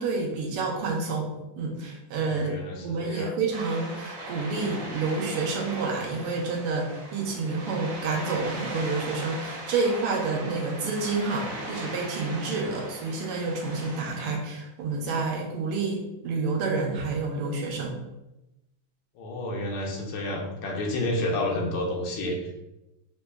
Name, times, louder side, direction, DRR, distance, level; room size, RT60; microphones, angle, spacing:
voice 1, 0.0-2.5 2.8-18.0, right 4 dB, 90° right, 0 dB, 1.8 m, -29 dB
voice 2, 2.3-3.3 19.1-22.5, left 1 dB, 85° left, -1 dB, 1.7 m, -30 dB
sound 1, 3.5-14.4, right 1 dB, 65° right, 1.9 m, -39 dB
5.5 x 3.5 x 2.3 m, 0.93 s
omnidirectional pair, 2.4 m